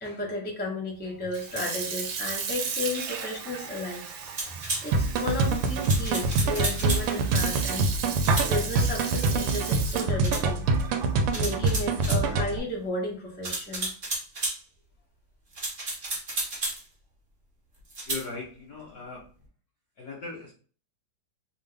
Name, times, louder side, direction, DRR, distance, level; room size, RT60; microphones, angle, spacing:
voice 1, 0.0-4.0 4.4-7.9 8.4-10.6 11.3-13.9, left 1 dB, 10° left, -2 dB, 0.5 m, -33 dB
Sink (filling or washing) / Fill (with liquid), 1.2-12.8, right 6 dB, 70° right, 1.3 m, -35 dB
sound 1, 4.4-4.8 5.8-7.1 8.2-8.5 10.2-10.5 11.3-12.2 13.4-14.6 15.5-16.8 17.9-18.2, right 2 dB, 40° right, 0.7 m, -32 dB
sound 2, 4.9-12.6, right 3 dB, 90° right, 1.5 m, -25 dB
voice 2, 18.0-19.3 20.0-20.5, left 4 dB, 60° left, -2 dB, 1.0 m, -38 dB
3.4 x 2.5 x 3.3 m, 0.40 s
omnidirectional pair, 2.4 m